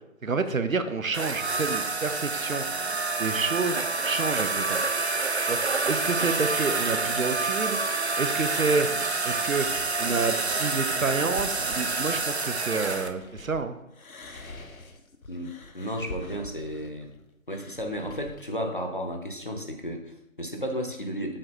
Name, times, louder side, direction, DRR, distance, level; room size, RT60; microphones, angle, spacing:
voice 1, 0.2-2.7 3.2-4.8 5.4-7.8 8.2-8.9 9.2-9.7 10.0-13.8, right 4 dB, 75° right, 10 dB, 0.8 m, -29 dB
sound 1, 1.1-13.1, right 3 dB, 55° right, 0.5 m, -28 dB
sound 2, 9.2-13.6 13.9-18.4, left 2 dB, 80° left, 1.0 m, -45 dB
voice 2, 15.3-17.1 17.5-21.4, equal, 40° left, 4 dB, 0.8 m, -33 dB
7.6 x 4.7 x 4.4 m, 0.89 s
figure-of-eight pair, 170°, 41 cm